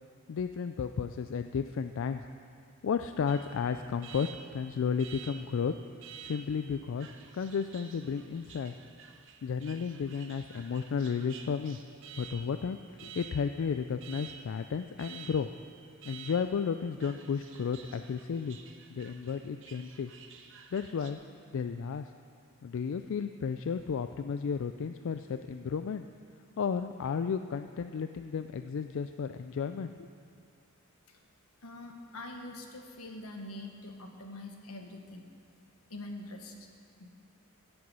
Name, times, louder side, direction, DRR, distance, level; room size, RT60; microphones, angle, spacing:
voice 1, 0.3-2.3 2.8-5.7 6.2-7.1 7.3-8.7 9.4-11.8 12.2-15.5 16.1-18.6 18.9-20.1 20.7-21.2 21.5-22.1 22.6-26.1 26.6-30.1, left 6 dB, 65° left, 9 dB, 0.4 m, -33 dB
Alarm, 3.3-21.1, right 7 dB, 65° right, 0.9 m, -51 dB
voice 2, 31.6-35.3 35.9-36.7 37.0-37.1, left 1 dB, 85° left, 3 dB, 1.4 m, -44 dB
16.0 x 7.8 x 5.5 m, 2.4 s
head